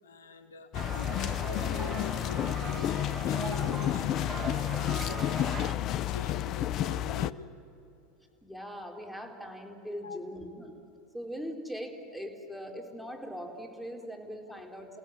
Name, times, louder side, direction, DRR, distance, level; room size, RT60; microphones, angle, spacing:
voice 1, 0.0-5.6 5.9-7.3 10.0-10.2, left 5 dB, 85° left, 8 dB, 1.8 m, -44 dB
sound 1, 0.7-7.3, left 12 dB, 50° left, 0.6 m, -31 dB
sound 2, 0.7-5.7, right 6 dB, 35° right, 1.4 m, -40 dB
voice 2, 8.4-10.7 11.1-15.0, equal, ahead, 2 dB, 4.2 m, -41 dB
30.0 x 17.0 x 9.8 m, 2.8 s
hypercardioid pair, 85°, 0 cm